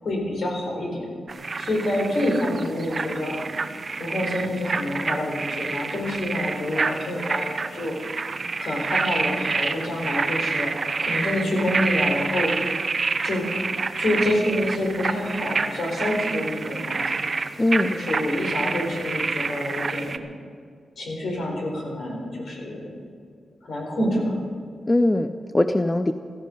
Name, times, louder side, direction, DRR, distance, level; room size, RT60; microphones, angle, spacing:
voice 1, 0.0-1.1 1.6-3.4 4.0-7.9 8.6-10.7 11.0-12.5 13.2-13.5 14.0-17.2 17.9-20.3 21.0-22.9 23.6-24.3, left 1 dB, 60° left, 0 dB, 4.5 m, -27 dB
sound 1, 1.3-20.2, right 4 dB, 35° right, 0.7 m, -28 dB
voice 2, 17.6-18.0 24.9-26.1, left 1 dB, 15° left, 8 dB, 0.5 m, -21 dB
16.5 x 14.5 x 5.3 m, 2.1 s
wide cardioid pair, 160°, 0 cm